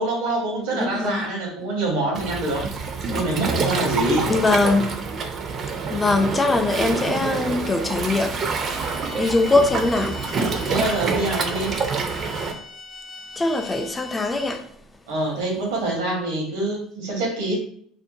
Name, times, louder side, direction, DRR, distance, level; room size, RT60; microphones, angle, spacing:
voice 1, 0.0-2.7 3.1-4.3 10.6-11.8 15.1-17.6, right 2 dB, 85° right, 1.0 m, -25 dB
voice 2, 0.7-1.3 4.3-5.0 5.9-8.4 9.1-10.3 13.4-14.7, left 2 dB, 20° left, 0.3 m, -22 dB
Waves surf, 2.1-12.5, right 4 dB, 45° right, 0.4 m, -27 dB
sound 1, 8.6-14.8, left 3 dB, 45° left, 0.9 m, -40 dB
2.5 x 2.1 x 2.7 m
supercardioid pair, 90°, 0 cm